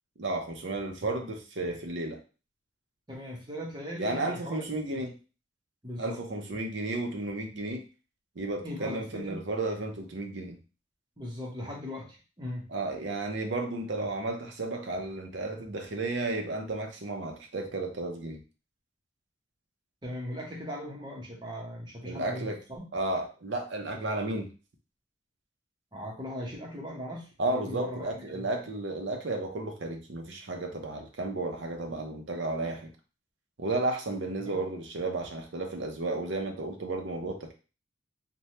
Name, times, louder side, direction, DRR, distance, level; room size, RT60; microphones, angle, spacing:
voice 1, 0.2-2.2 4.0-5.2 6.0-7.8 8.4-10.6 12.7-18.4 22.0-22.6 22.9-24.5 27.4-32.9 33.6-37.5, right 2 dB, 65° right, 3 dB, 0.6 m, -33 dB
voice 2, 3.1-5.0 5.8-6.2 8.6-9.4 11.2-12.7 20.0-22.9 25.9-28.5 34.4-34.6, left 1 dB, 25° right, -2 dB, 0.8 m, -39 dB
3.2 x 2.2 x 2.8 m, 0.33 s
head